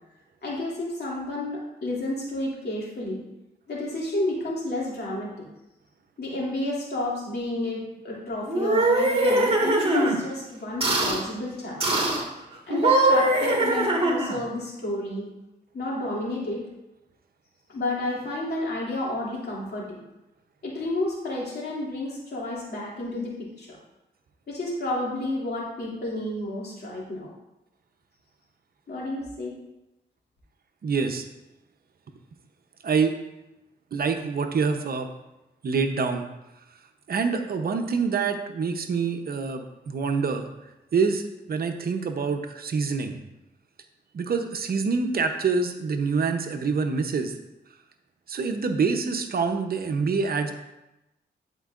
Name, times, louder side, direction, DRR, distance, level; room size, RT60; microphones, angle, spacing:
voice 1, 0.4-3.2 3.7-5.4 6.2-12.0 12.7-15.3 15.7-16.6 17.7-20.0 20.6-23.8 24.5-27.3 28.9-29.5, left 1 dB, 65° left, -5 dB, 2.6 m, -31 dB
sound 1, 8.5-10.2 10.8-11.2 11.8-12.2 12.7-14.4, right 2 dB, 30° right, 1.8 m, -22 dB
voice 2, 30.8-31.3 32.8-33.1 33.9-35.1 35.6-36.3 37.1-40.5 40.9-43.2 44.1-47.3 48.3-50.5, right 5 dB, 55° right, 5 dB, 0.8 m, -26 dB
11.0 x 4.5 x 2.5 m, 0.95 s
cardioid pair, 60°, 18 cm